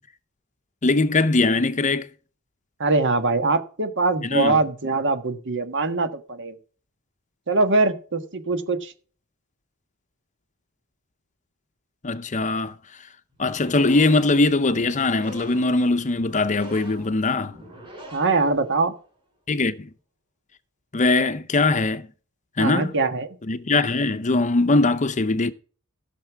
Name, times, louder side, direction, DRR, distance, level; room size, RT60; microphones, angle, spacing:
voice 1, 0.8-2.1 4.2-4.6 12.0-12.7 13.4-17.5 19.5-19.9 20.9-22.1 22.6-22.9 23.5-25.5, left 3 dB, 35° left, 0.7 m, -21 dB
voice 2, 2.8-6.5 7.5-8.9 18.1-18.9 22.6-23.3, right 3 dB, 60° right, 1.5 m, -22 dB
sound 1, 13.3-19.1, equal, 25° right, 5.1 m, -44 dB
14.5 x 6.7 x 4.6 m
head